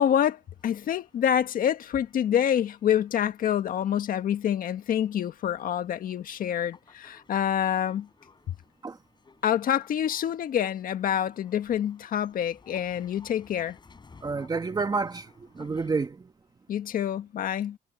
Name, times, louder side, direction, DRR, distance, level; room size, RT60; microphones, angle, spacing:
voice 1, 0.0-8.1 9.4-13.8 16.7-17.8, left 9 dB, 55° left, 1.8 m, -27 dB
sound 1, 0.6-16.1, left 4 dB, 25° left, 6.4 m, -58 dB
voice 2, 14.2-16.3, right 4 dB, 25° right, 1.8 m, -29 dB
cardioid pair, 110°, 17 cm